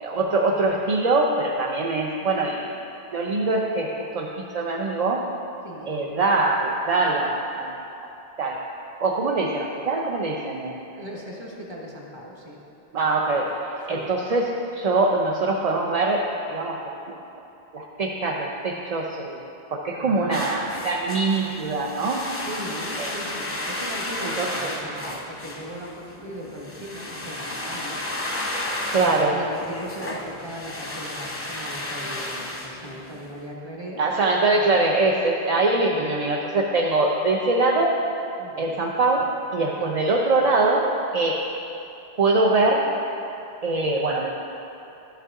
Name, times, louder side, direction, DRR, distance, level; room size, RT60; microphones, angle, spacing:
voice 1, 0.0-2.7 3.1-5.3 5.9-7.8 8.4-8.6 9.0-10.8 12.9-16.8 17.1-17.2 17.7-19.4 19.7-22.3 23.0-23.1 24.2-24.7 28.9-29.3 34.0-37.9 38.6-39.2 39.5-41.5 42.2-42.9 43.6-44.3, right 3 dB, 50° right, -1 dB, 0.5 m, -23 dB
voice 2, 10.9-12.6 13.9-14.1 19.9-20.4 22.4-28.0 29.0-34.0 35.8-36.2 38.4-38.7 39.8-40.0, equal, 25° right, -3 dB, 1.1 m, -38 dB
sound 1, 20.3-33.3, left 1 dB, 15° left, 0.6 m, -33 dB
11.5 x 5.7 x 3.6 m, 2.8 s
omnidirectional pair, 1.1 m